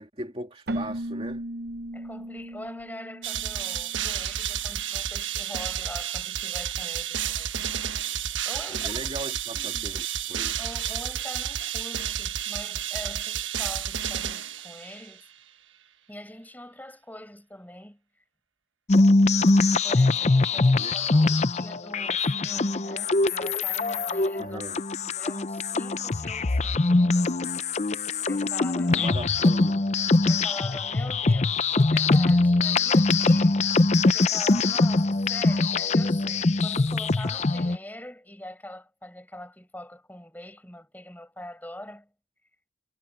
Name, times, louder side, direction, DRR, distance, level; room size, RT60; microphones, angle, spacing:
voice 1, 0.0-1.4 8.7-10.6 20.7-21.3 24.4-24.8 28.8-29.8, right 1 dB, 30° right, 2.8 m, -38 dB
Keyboard (musical), 0.7-4.3, right 1 dB, 55° right, 0.8 m, -36 dB
voice 2, 1.9-7.8 8.5-9.3 9.6-10.0 10.6-15.3 16.1-18.0 19.8-24.6 25.0-27.3 28.3-29.1 30.2-33.6 34.1-42.1, left 1 dB, 10° left, 7.3 m, -43 dB
sound 1, 3.2-15.1, right 9 dB, 85° right, 1.4 m, -31 dB
sound 2, 18.9-37.8, left 3 dB, 35° left, 0.6 m, -22 dB
head